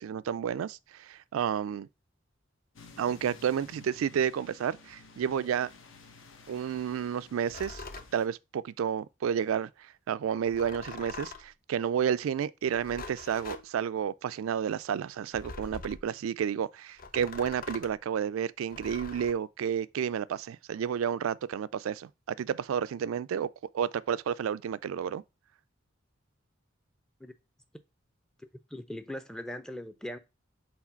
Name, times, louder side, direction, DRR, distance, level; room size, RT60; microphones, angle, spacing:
voice 1, 0.0-1.9 3.0-5.7 6.5-7.8 8.1-23.5 23.7-25.2, right 8 dB, 85° right, 0.3 m, -31 dB
sound 1, 2.8-8.3, left 4 dB, 70° left, 1.0 m, -53 dB
sound 2, 7.5-8.1 10.4-11.5 12.6-13.7 15.3-16.1 17.0-18.0 18.7-19.3, left 4 dB, 45° left, 0.6 m, -43 dB
voice 2, 28.4-30.2, left 1 dB, 5° left, 0.5 m, -40 dB
4.8 x 3.9 x 5.6 m
head